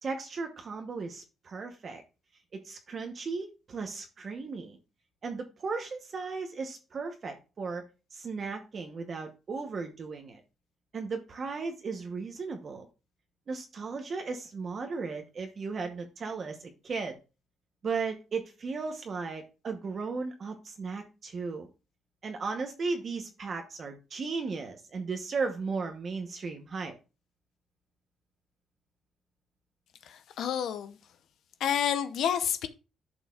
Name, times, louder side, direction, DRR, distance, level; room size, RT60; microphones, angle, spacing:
voice 1, 0.0-2.0 2.5-4.8 5.2-7.8 8.1-10.4 10.9-12.9 13.5-17.2 17.8-21.7 22.2-26.9, right 4 dB, 40° right, 0.9 m, -36 dB
voice 2, 30.0-31.0 31.6-32.7, left 9 dB, 70° left, 0.7 m, -29 dB
11.0 x 6.4 x 2.4 m
cardioid pair, 150°, 0 cm